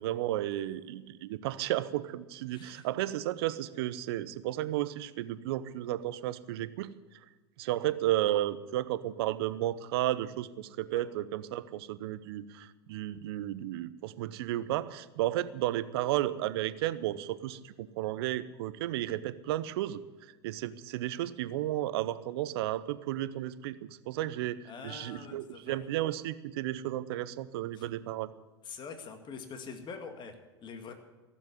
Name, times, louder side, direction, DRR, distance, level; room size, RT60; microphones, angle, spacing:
voice 1, 0.0-6.9 7.6-17.6 18.0-20.0 20.4-23.8 24.1-24.6 24.8-28.3, right 14 dB, 65° right, 15 dB, 0.8 m, -33 dB
voice 2, 2.5-2.9 10.9-11.0 24.6-25.8 27.7-27.9 28.6-30.9, left 5 dB, 35° left, 6 dB, 2.0 m, -45 dB
15.5 x 7.5 x 9.5 m, 1.2 s
hypercardioid pair, 90°, 14 cm